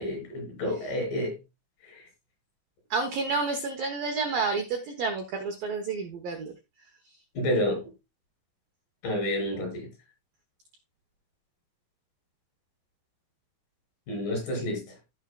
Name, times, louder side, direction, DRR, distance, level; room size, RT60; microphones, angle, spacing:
voice 1, 0.0-1.4 1.9-2.0 7.4-7.8 9.0-9.9 14.1-14.8, left 1 dB, 45° left, 7.0 m, -29 dB
voice 2, 2.9-6.5, right 4 dB, 85° right, 2.0 m, -30 dB
15.5 x 7.3 x 2.3 m
omnidirectional pair, 6.0 m